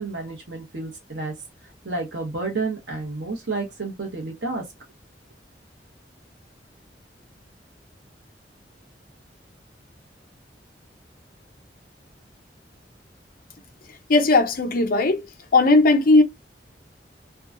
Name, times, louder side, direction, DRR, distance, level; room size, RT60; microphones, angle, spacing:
voice 1, 0.0-1.3 1.8-4.6, right 3 dB, 80° right, 0.9 m, -30 dB
voice 2, 14.1-15.2 15.5-16.2, left 2 dB, 55° left, 0.6 m, -17 dB
3.5 x 2.2 x 2.5 m
head